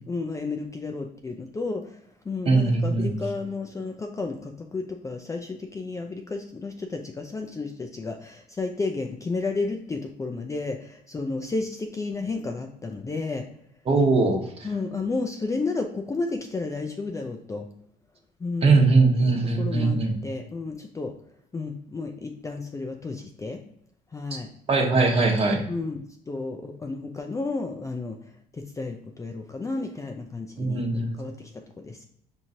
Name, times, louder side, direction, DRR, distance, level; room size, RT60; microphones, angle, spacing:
voice 1, 0.0-2.0 2.2-13.4 14.6-17.7 18.4-18.8 19.3-21.1 21.5-23.6 24.1-24.5 25.7-28.2 28.5-32.0, left 3 dB, 20° left, 4 dB, 0.4 m, -32 dB
voice 2, 2.5-3.2 13.9-14.7 18.6-20.2 24.7-25.6 30.6-31.1, right 3 dB, 35° right, 2 dB, 1.0 m, -21 dB
6.2 x 3.0 x 2.7 m, 0.71 s
cardioid pair, 110°, 17 cm